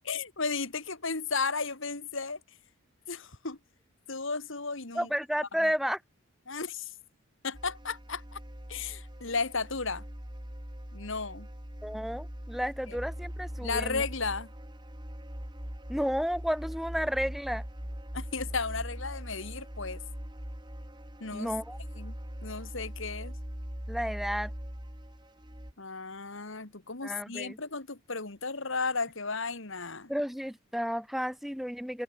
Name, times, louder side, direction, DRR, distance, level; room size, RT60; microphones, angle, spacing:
voice 1, 0.0-2.4 3.1-3.6 4.1-5.1 6.5-6.9 7.4-8.4 8.7-10.0 10.9-11.5 12.9-13.0 13.6-14.5 18.1-20.0 21.2-21.5 22.0-22.1 22.4-23.4 25.8-30.1, left 4 dB, 60° left, 2.2 m, -34 dB
voice 2, 4.9-6.0 11.8-14.0 15.9-17.6 21.3-21.8 23.9-24.5 27.0-27.6 30.1-32.0, equal, ahead, 2.2 m, -32 dB
sound 1, 7.5-25.7, equal, 20° right, 3.6 m, -41 dB
open air
head